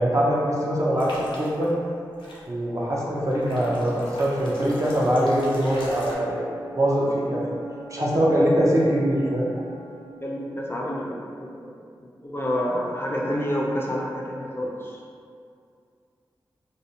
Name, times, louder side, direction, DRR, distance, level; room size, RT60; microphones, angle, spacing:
voice 1, 0.0-1.7 2.5-6.5 6.7-7.5 7.9-9.5, equal, 40° right, -5 dB, 0.6 m, -23 dB
sound 1, 1.0-1.7 2.2-2.4 3.3-6.1, left 1 dB, 90° left, 0.5 m, -41 dB
Wind instrument woodwind instrument, 4.2-10.2, right 4 dB, 85° right, 0.9 m, -44 dB
voice 2, 8.0-8.3 10.2-11.7 12.0-15.0, equal, 25° left, -3 dB, 0.4 m, -29 dB
2.4 x 2.1 x 2.7 m, 2.3 s
cardioid pair, 45°, 9 cm